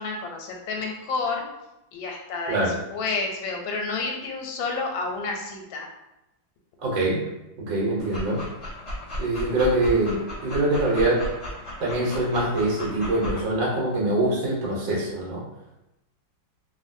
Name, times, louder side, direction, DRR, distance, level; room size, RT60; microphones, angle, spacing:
voice 1, 0.0-1.4 1.9-5.9, left 3 dB, 90° left, 1 dB, 1.4 m, -30 dB
voice 2, 6.8-7.2 7.6-8.4 9.2-11.3 11.8-15.4, right 2 dB, 75° right, -5 dB, 1.5 m, -24 dB
Dog, 8.0-13.4, left 1 dB, 30° left, 1.0 m, -35 dB
3.1 x 2.5 x 2.5 m, 0.92 s
omnidirectional pair, 2.1 m